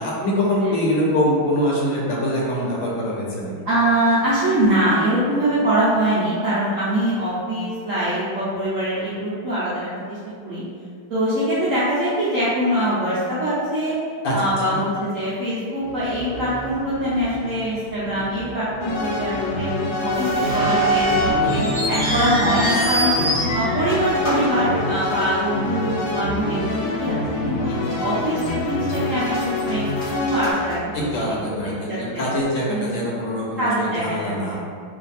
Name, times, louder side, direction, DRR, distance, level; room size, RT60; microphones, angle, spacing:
voice 1, 0.0-3.5 14.2-14.3 14.7-14.8 21.4-21.7 23.2-23.5 27.7-28.0 30.9-34.6, left 1 dB, 70° left, -4 dB, 1.3 m, -24 dB
voice 2, 3.6-10.6 11.1-13.9 14.3-21.6 21.9-23.1 23.5-27.7 28.0-29.8 30.1-31.1 31.4-31.5 31.8-32.0 32.7-32.9 33.6-34.6, right 1 dB, 80° right, -10 dB, 0.7 m, -23 dB
sound 1, 15.8-23.2, equal, 25° right, 0.9 m, -38 dB
sound 2, 18.8-30.5, left 2 dB, 85° left, 1.5 m, -26 dB
sound 3, 20.1-25.4 25.7-25.8 26.5-26.7 27.2-27.3 27.9-28.5 28.8-31.3, right 1 dB, 35° left, 0.9 m, -25 dB
3.3 x 2.5 x 4.0 m, 2.3 s
omnidirectional pair, 2.3 m